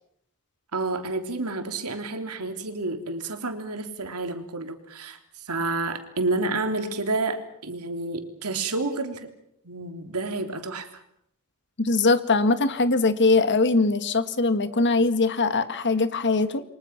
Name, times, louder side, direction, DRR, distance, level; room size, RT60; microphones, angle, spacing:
voice 1, 0.7-5.2 5.5-9.3 9.6-10.9, right 2 dB, 90° right, 6 dB, 3.3 m, -29 dB
voice 2, 11.8-16.6, left 3 dB, 55° left, 11 dB, 1.8 m, -21 dB
28.5 x 24.0 x 6.0 m, 0.71 s
head